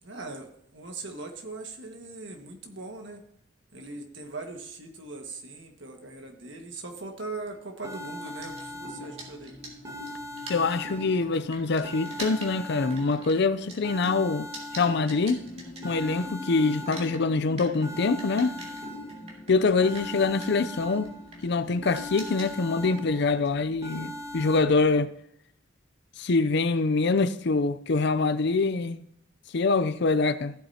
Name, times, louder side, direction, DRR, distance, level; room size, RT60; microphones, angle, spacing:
voice 1, 0.0-3.2 3.7-9.6, right 3 dB, 65° right, 1.8 m, -40 dB
sound 1, 7.4-7.5 7.8-9.4 9.8-11.4 11.8-13.4 13.8-15.4 15.8-17.4 17.8-19.4 19.8-21.4 21.8-23.4 23.8-24.6, left 1 dB, 15° right, 1.6 m, -40 dB
sound 2, 8.3-16.4 16.7-25.0, right 2 dB, 35° right, 2.8 m, -46 dB
sound 3, 8.4-23.6, left 2 dB, 35° left, 3.3 m, -47 dB
voice 2, 10.5-14.5 14.7-15.4 15.8-18.5 19.5-21.1 21.4-25.1 26.2-29.0 29.5-30.5, left 3 dB, 60° left, 0.5 m, -24 dB
15.0 x 8.8 x 2.9 m
head